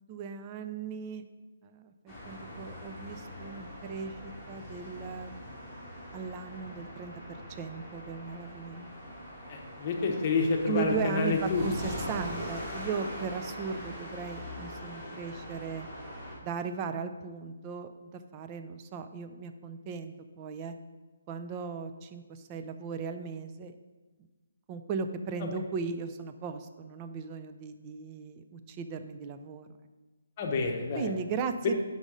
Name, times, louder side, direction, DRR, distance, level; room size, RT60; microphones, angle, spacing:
voice 1, 0.1-1.2 1.6-5.3 6.1-8.9 10.7-15.9 16.4-20.7 21.3-23.7 24.7-29.7 30.9-31.7, right 5 dB, 20° right, 8 dB, 0.4 m, -37 dB
sound 1, 2.1-16.4, equal, 5° right, 1.8 m, -42 dB
voice 2, 9.5-11.6 25.4-25.5 30.4-31.1, left 4 dB, 25° left, 1 dB, 0.9 m, -29 dB
5.3 x 5.1 x 6.2 m, 1.3 s
hypercardioid pair, 170°, 0 cm